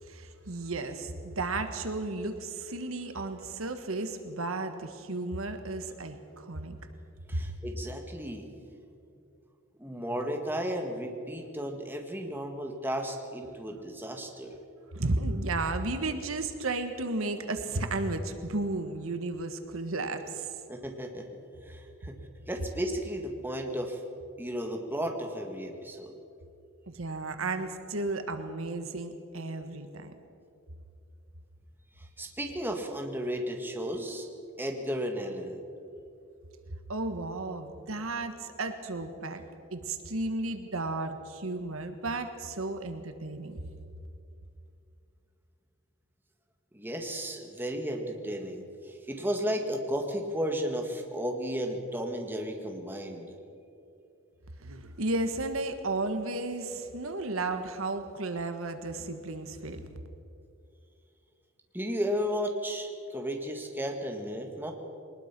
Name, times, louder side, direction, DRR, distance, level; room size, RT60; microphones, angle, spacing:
voice 1, 0.0-6.8 7.3-7.4 14.9-20.5 26.9-30.1 36.9-39.4 39.7-43.6 54.6-59.8, right 2 dB, 75° right, 8 dB, 1.5 m, -33 dB
voice 2, 7.3-8.5 9.8-14.6 20.7-22.2 22.5-24.0 24.4-26.2 32.0-34.3 34.6-35.6 46.7-53.4 61.7-64.7, equal, 10° right, 2 dB, 1.9 m, -34 dB
22.0 x 20.0 x 6.1 m, 2.6 s
head